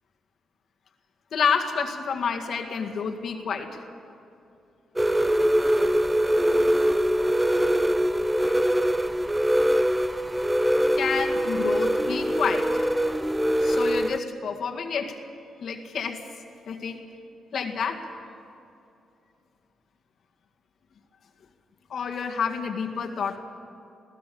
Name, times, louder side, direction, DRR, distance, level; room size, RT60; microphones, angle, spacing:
voice 1, 1.3-3.8 6.6-6.7 11.0-12.9 13.6-15.2 15.6-16.3 16.7-17.0 17.5-18.0 21.9-23.4, left 6 dB, 65° left, 3 dB, 2.0 m, -29 dB
sound 1, 5.0-14.2, equal, 10° right, 0.6 m, -23 dB
23.0 x 16.0 x 7.0 m, 2.7 s
cardioid pair, 85°, 0 cm